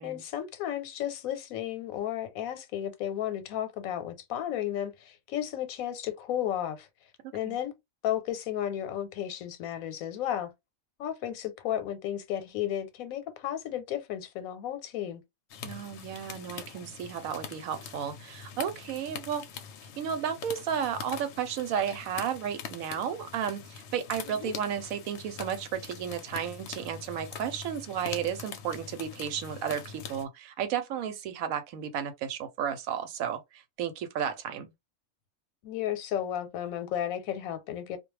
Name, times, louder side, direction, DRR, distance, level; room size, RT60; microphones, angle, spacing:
voice 1, 0.0-6.9 7.3-7.7 8.0-10.5 11.0-15.2 24.3-24.5 35.6-38.0, left 11 dB, 85° left, 1.0 m, -33 dB
sound 1, 15.5-30.2, left 7 dB, 65° left, 0.8 m, -43 dB
voice 2, 15.6-19.4 20.0-34.7, right 8 dB, 85° right, 1.0 m, -33 dB
2.3 x 2.1 x 3.0 m
omnidirectional pair, 1.4 m